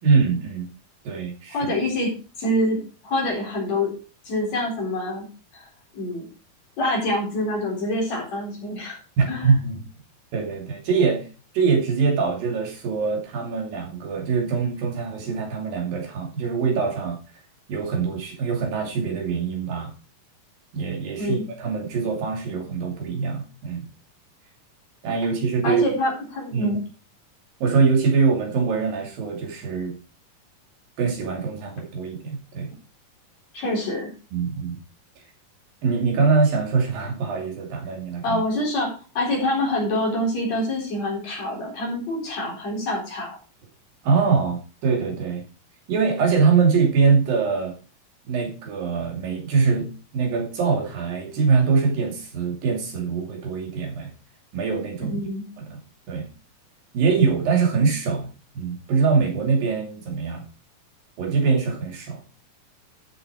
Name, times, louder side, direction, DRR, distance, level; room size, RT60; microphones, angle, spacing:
voice 1, 0.0-0.7 1.1-1.7 9.2-9.9 10.3-11.2 11.5-17.2 17.7-19.9 20.7-23.9 25.0-25.8 26.5-26.8 27.6-29.9 31.0-32.7 34.3-34.8 35.8-38.4 44.0-45.4 45.9-47.7 48.3-54.1 54.5-55.2 55.6-55.8 56.1-56.3 56.9-58.3 58.6-60.4 61.2-62.2, right 5 dB, 80° right, 1 dB, 4.4 m, -23 dB
voice 2, 1.5-2.1 2.4-3.9 4.3-5.3 5.5-5.7 5.9-6.3 6.8-9.0 9.3-9.5 21.2-21.5 25.6-26.8 33.5-34.1 38.2-43.4 55.1-55.5, left 1 dB, 50° left, -1 dB, 5.3 m, -26 dB
12.5 x 7.2 x 4.7 m, 0.35 s
omnidirectional pair, 4.0 m